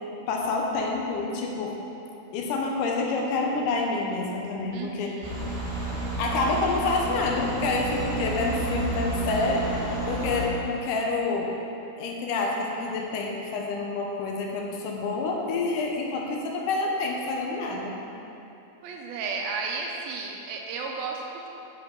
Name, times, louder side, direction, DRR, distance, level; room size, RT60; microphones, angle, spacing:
voice 1, 0.3-1.8 2.3-5.1 6.2-9.7 10.1-11.5 12.0-18.0, left 3 dB, 75° left, 0 dB, 2.0 m, -28 dB
voice 2, 4.7-5.4 18.8-21.5, right 4 dB, 80° right, 0 dB, 2.3 m, -33 dB
sound 1, 5.2-10.5, right 3 dB, 30° right, 1.2 m, -31 dB
9.6 x 7.7 x 3.9 m, 2.9 s
omnidirectional pair, 4.7 m